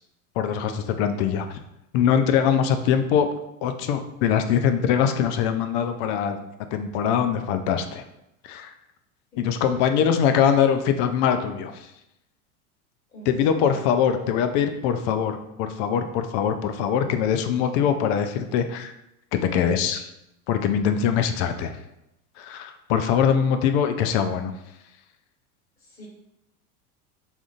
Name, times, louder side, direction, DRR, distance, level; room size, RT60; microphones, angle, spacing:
voice 1, 0.4-1.5 1.9-3.3 3.6-6.4 6.7-8.0 8.4-8.7 9.4-11.9 13.3-18.9 19.4-20.1 20.5-21.7 22.4-24.5, left 8 dB, 50° left, 8 dB, 0.4 m, -22 dB
voice 2, 13.1-14.2 25.8-26.1, equal, 20° left, -8 dB, 1.3 m, -45 dB
3.6 x 2.6 x 2.5 m, 0.85 s
hypercardioid pair, 95°, 44 cm